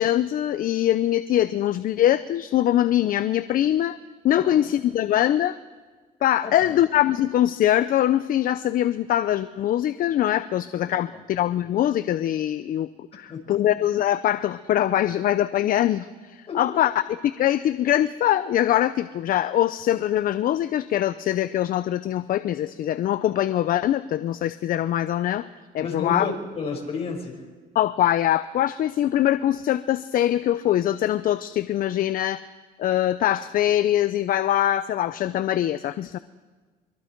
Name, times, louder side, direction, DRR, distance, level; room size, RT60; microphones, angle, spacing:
voice 1, 0.0-4.0 4.2-5.6 6.2-16.9 17.2-25.5 25.7-26.3 27.7-32.4 32.8-36.2, left 12 dB, 55° left, 13 dB, 0.6 m, -23 dB
voice 2, 6.4-6.8 11.1-11.2 13.3-13.7 16.5-16.8 25.8-27.5, left 4 dB, 35° left, 1 dB, 5.5 m, -32 dB
24.5 x 23.5 x 4.6 m, 1.4 s
cardioid pair, 110°, 17 cm